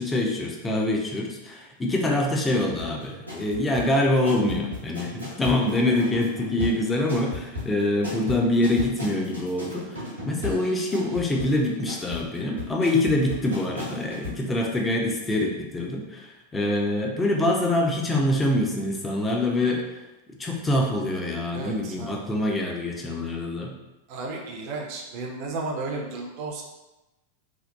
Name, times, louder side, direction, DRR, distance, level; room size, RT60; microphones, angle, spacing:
voice 1, 0.0-9.8 10.3-19.8 20.4-23.8, left 1 dB, 15° left, 0 dB, 0.4 m, -25 dB
sound 1, 2.8-14.4 14.7-14.8, left 2 dB, 85° right, 0.8 m, -36 dB
voice 2, 21.5-22.3 24.1-26.6, right 3 dB, 45° right, 0 dB, 0.5 m, -34 dB
2.8 x 2.0 x 2.3 m, 1.0 s
figure-of-eight pair, 90°, 0 cm